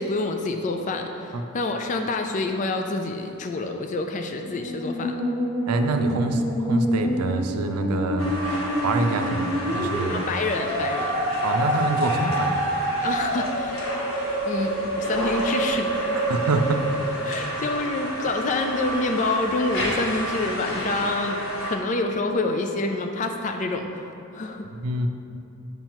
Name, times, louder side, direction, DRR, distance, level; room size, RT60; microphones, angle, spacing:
voice 1, 0.0-5.1 10.1-11.1 13.0-14.0 14.5-14.7 15.0-15.9 17.2-21.4 21.6-24.6, left 2 dB, 35° left, 5 dB, 0.3 m, -27 dB
Musical instrument, 4.4-17.4, right 1 dB, 5° right, 1.4 m, -27 dB
voice 2, 5.7-10.2 11.4-12.6 16.1-16.8 24.8-25.1, right 2 dB, 90° right, 6 dB, 0.5 m, -26 dB
sound 1, 8.2-21.7, equal, 70° left, 1.2 m, -32 dB
7.3 x 5.4 x 3.0 m, 2.8 s
head